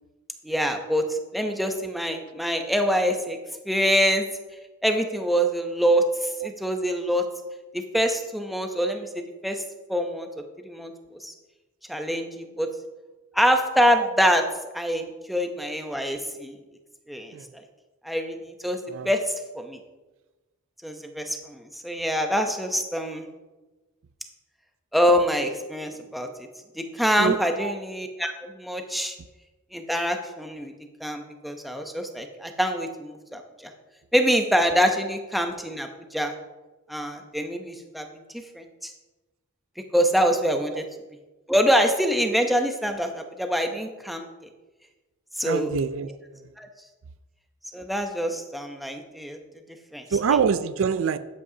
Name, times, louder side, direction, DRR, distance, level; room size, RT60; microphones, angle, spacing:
voice 1, 0.4-3.4 3.7-4.2 4.8-7.2 7.7-9.6 9.9-10.3 10.6-10.9 11.2-11.3 11.9-12.7 13.3-14.4 14.7-16.6 17.1-17.3 18.0-18.4 18.6-18.8 19.0-19.2 19.6-19.8 20.8-23.2 24.9-26.3 26.8-29.1 29.7-30.7 31.0-33.4 34.1-36.3 36.9-38.1 38.5-38.9 39.9-40.8 41.5-44.3 45.4-45.7 46.6-46.7 47.7-49.4 49.9-50.1, equal, ahead, 4 dB, 0.6 m, -25 dB
voice 2, 27.2-27.7 45.4-46.1 50.1-51.2, right 6 dB, 60° right, 13 dB, 0.4 m, -25 dB
12.5 x 8.3 x 2.8 m, 1.2 s
head